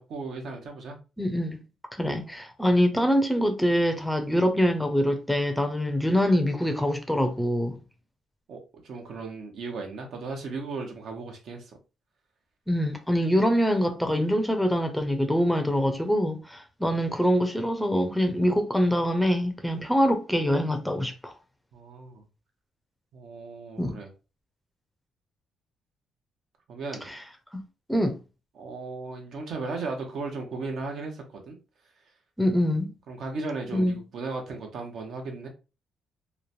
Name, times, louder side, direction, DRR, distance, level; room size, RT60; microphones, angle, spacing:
voice 1, 0.0-1.0 8.5-11.8 21.7-22.2 23.1-24.1 26.7-27.1 28.6-31.6 33.1-35.5, right 3 dB, 70° right, 0.8 m, -36 dB
voice 2, 1.2-1.6 2.0-7.8 12.7-21.3 23.8-24.0 27.1-27.2 27.9-28.2 32.4-32.9 33.7-34.0, equal, 5° left, 0.5 m, -24 dB
3.0 x 2.1 x 2.5 m
cardioid pair, 90°, 0 cm